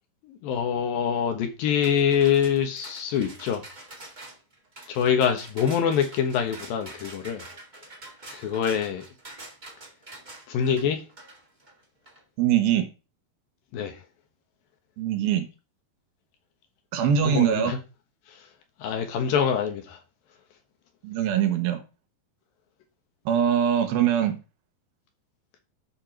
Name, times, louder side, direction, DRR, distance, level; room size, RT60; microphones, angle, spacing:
voice 1, 0.2-3.6 4.9-7.4 8.3-9.0 10.5-11.0 13.7-14.0 17.2-17.8 18.3-18.5 18.8-20.0, left 8 dB, 75° left, 3.0 m, -25 dB
sound 1, 1.8-12.2, right 2 dB, 25° right, 0.9 m, -46 dB
voice 2, 12.4-12.9 15.0-15.5 16.9-17.7 21.0-21.8 23.3-24.4, right 9 dB, 80° right, 2.8 m, -22 dB
12.0 x 4.5 x 4.5 m
omnidirectional pair, 4.3 m